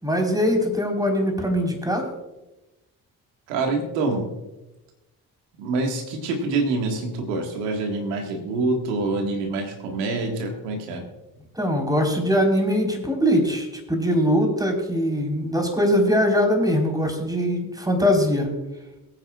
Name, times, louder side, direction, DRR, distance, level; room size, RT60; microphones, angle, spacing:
voice 1, 0.0-2.1 11.5-18.5, equal, 10° right, 2 dB, 4.3 m, -22 dB
voice 2, 3.5-4.3 5.6-11.0, right 3 dB, 80° right, 3 dB, 1.9 m, -26 dB
22.0 x 9.0 x 2.4 m, 1.0 s
hypercardioid pair, 40°, 47 cm